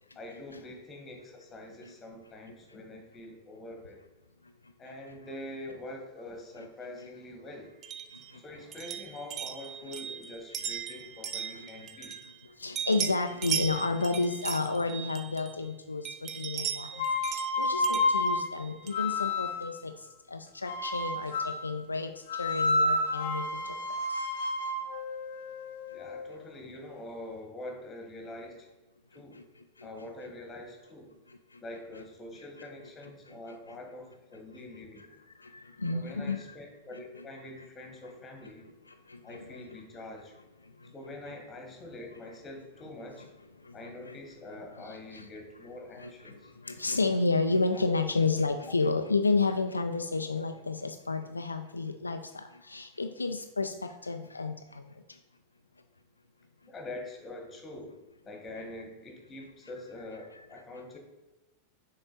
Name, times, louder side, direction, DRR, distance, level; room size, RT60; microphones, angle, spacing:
voice 1, 0.1-4.0 4.8-7.7 8.3-12.2 14.2-14.3 25.9-28.7 29.1-29.4 29.8-31.1 31.6-35.1 35.9-38.7 39.2-40.3 40.9-43.3 43.7-46.5 56.6-57.9 58.2-61.0, left 1 dB, 20° left, 3 dB, 1.4 m, -45 dB
sound 1, 7.8-12.5 12.8-15.7 16.1-19.1, right 8 dB, 30° right, 0.4 m, -38 dB
voice 2, 8.1-8.4 10.6-10.7 11.4-11.7 12.0-12.2 12.6-24.3 29.1-29.4 29.8-29.9 31.3-31.6 35.3-36.4 38.9-39.6 40.8-40.9 43.6-44.2 44.8-45.3 46.0-55.2, left 3 dB, 80° left, 7 dB, 0.3 m, -32 dB
sound 2, 16.9-19.8 20.7-21.7 22.3-26.3, left 2 dB, 55° left, 0.7 m, -30 dB
6.5 x 4.0 x 3.9 m, 1.1 s
figure-of-eight pair, 90°, 0 cm